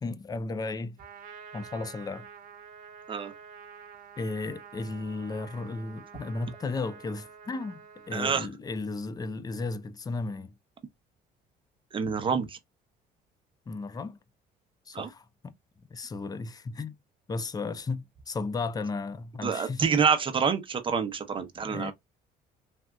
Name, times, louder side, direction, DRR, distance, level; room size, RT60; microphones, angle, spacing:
voice 1, 0.0-1.0 1.5-2.3 4.2-10.5 13.7-14.2 14.9-15.5 15.9-16.9 17.3-19.8 21.6-21.9, left 3 dB, 20° left, 0.4 m, -34 dB
Trumpet, 1.0-8.2, right 7 dB, 55° right, 1.1 m, -48 dB
voice 2, 8.1-8.5 11.9-12.6 14.9-15.1 19.4-21.9, right 6 dB, 30° right, 0.8 m, -27 dB
3.4 x 2.6 x 2.3 m
cardioid pair, 110°, 17 cm